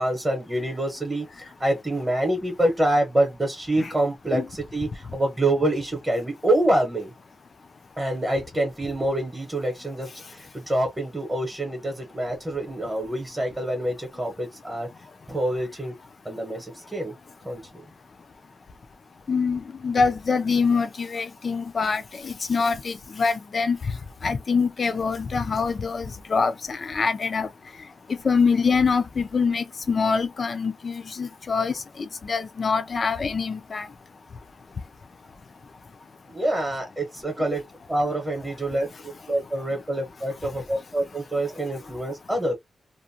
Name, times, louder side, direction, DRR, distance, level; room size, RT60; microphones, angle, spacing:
voice 1, 0.0-7.1 8.0-14.9 15.3-15.9 16.2-17.1 17.4-17.6 36.3-37.6 37.9-42.5, right 1 dB, 15° right, 0.9 m, -26 dB
voice 2, 19.3-23.8 24.2-27.5 28.1-33.9, left 5 dB, 45° left, 0.4 m, -25 dB
2.5 x 2.2 x 2.6 m
wide cardioid pair, 150°, 0 cm